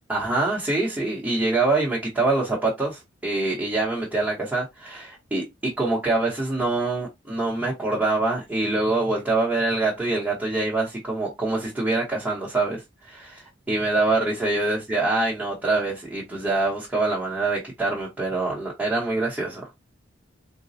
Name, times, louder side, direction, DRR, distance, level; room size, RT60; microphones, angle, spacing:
voice 1, 0.1-19.6, right 2 dB, 10° right, 0.9 m, -25 dB
4.0 x 2.2 x 2.6 m
head